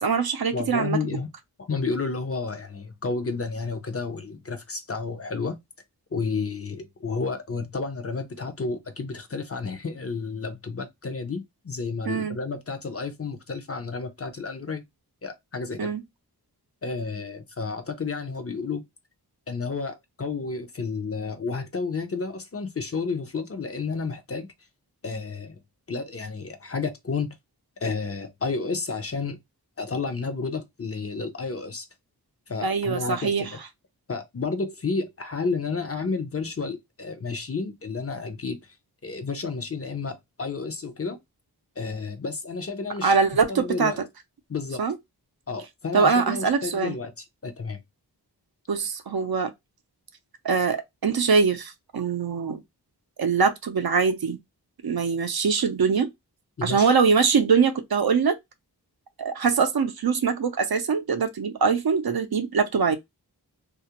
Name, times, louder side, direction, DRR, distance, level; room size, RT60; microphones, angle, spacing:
voice 1, 0.0-1.0 12.1-12.4 15.8-16.0 32.6-33.5 43.0-43.9 44.8-45.0 45.9-46.9 48.7-49.5 50.4-52.6 53.2-54.4 54.8-56.1 56.6-58.4 59.2-63.0, right 5 dB, 65° right, 0.5 m, -23 dB
voice 2, 0.5-1.3 1.6-5.6 6.1-14.8 15.2-15.9 16.8-18.8 19.5-24.5 25.0-25.6 25.9-27.3 27.8-29.4 29.8-31.9 32.5-33.6 34.1-38.7 39.0-41.2 41.8-43.2 43.5-44.0 44.5-44.8 45.5-47.8 56.6-56.9, left 4 dB, 35° left, 0.5 m, -31 dB
2.4 x 2.0 x 2.8 m
wide cardioid pair, 50°, 40 cm